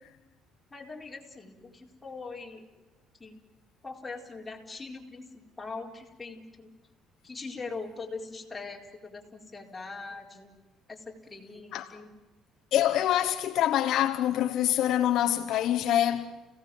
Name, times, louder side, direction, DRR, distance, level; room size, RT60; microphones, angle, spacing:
voice 1, 0.7-2.6 3.2-3.4 3.8-6.7 7.2-10.5 10.9-12.1, left 4 dB, 15° left, 4.4 m, -42 dB
voice 2, 12.7-16.3, left 12 dB, 65° left, 1.3 m, -25 dB
30.0 x 17.5 x 7.8 m
cardioid pair, 125°, 0 cm